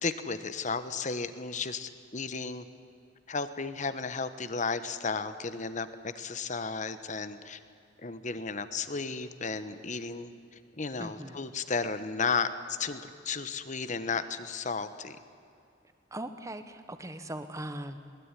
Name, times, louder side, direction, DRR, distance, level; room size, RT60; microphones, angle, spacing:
voice 1, 0.0-2.7 3.3-7.6 8.0-10.3 10.7-15.2, left 4 dB, 40° left, 11 dB, 1.2 m, -34 dB
voice 2, 11.0-11.3 16.1-18.0, right 1 dB, 15° right, 9 dB, 1.3 m, -39 dB
20.5 x 19.5 x 10.0 m, 2.4 s
head